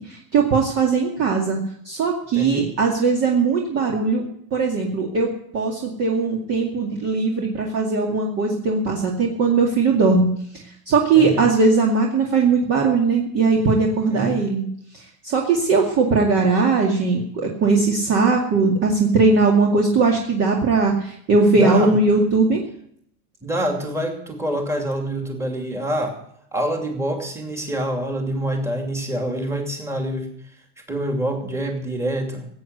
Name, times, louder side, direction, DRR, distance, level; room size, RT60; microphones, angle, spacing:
voice 1, 0.1-1.6 1.8-4.2 4.5-10.3 10.9-14.7 15.2-22.6, right 4 dB, 30° right, 0 dB, 2.3 m, -19 dB
voice 2, 2.3-2.7 11.1-11.5 14.1-14.4 21.5-21.9 23.4-26.2 26.5-30.3 30.9-32.5, right 1 dB, 5° right, 2 dB, 2.6 m, -26 dB
17.0 x 8.6 x 8.0 m, 0.69 s
supercardioid pair, 155°, 47 cm